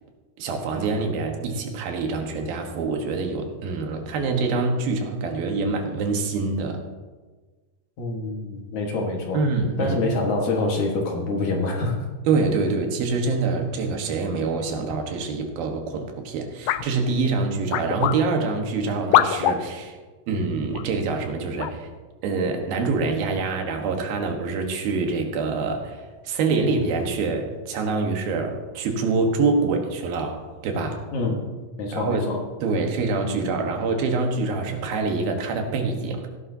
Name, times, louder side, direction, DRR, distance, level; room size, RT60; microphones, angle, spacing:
voice 1, 0.4-6.8 9.3-10.0 12.3-20.0 20.3-21.9 22.2-31.0 31.9-36.3, right 4 dB, 85° right, 3 dB, 3.2 m, -25 dB
voice 2, 8.0-9.4 9.8-12.0 31.1-31.4 31.8-32.4, left 2 dB, 60° left, 0 dB, 2.7 m, -25 dB
sound 1, 16.7-16.9 17.7-18.2 19.1-19.6 20.7-20.8 21.6-21.8, left 12 dB, 90° left, 1.7 m, -21 dB
16.5 x 11.5 x 2.8 m, 1.3 s
omnidirectional pair, 4.1 m